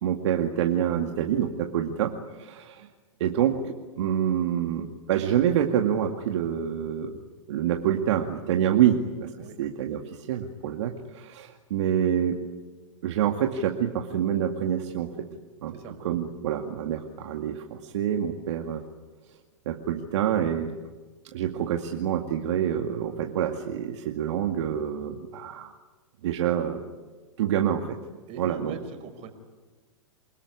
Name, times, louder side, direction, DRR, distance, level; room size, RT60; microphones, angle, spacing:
voice 1, 0.0-2.9 3.2-7.2 7.5-9.3 9.6-12.4 13.0-15.1 15.6-15.7 16.0-18.8 19.7-20.7 21.3-25.7 26.2-26.8 27.4-28.0 28.4-28.8, right 9 dB, 65° right, 4 dB, 2.2 m, -27 dB
voice 2, 28.3-29.3, right 5 dB, 40° right, 7 dB, 5.2 m, -41 dB
28.5 x 20.0 x 9.9 m, 1.3 s
hypercardioid pair, 115°, 16 cm